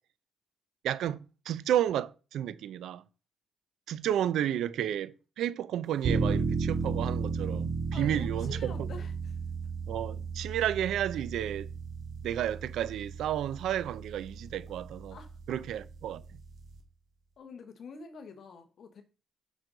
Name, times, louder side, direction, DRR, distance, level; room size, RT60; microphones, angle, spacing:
voice 1, 0.8-1.2 1.5-3.0 3.9-8.9 9.9-11.7 12.2-15.2 15.5-16.2, right 11 dB, 80° right, 0.6 m, -32 dB
sound 1, 6.0-16.8, right 4 dB, 65° right, 2.3 m, -34 dB
voice 2, 7.9-9.4 15.1-15.3 17.4-19.0, left 5 dB, 60° left, 1.4 m, -47 dB
10.0 x 6.4 x 4.0 m
cardioid pair, 90°, 0 cm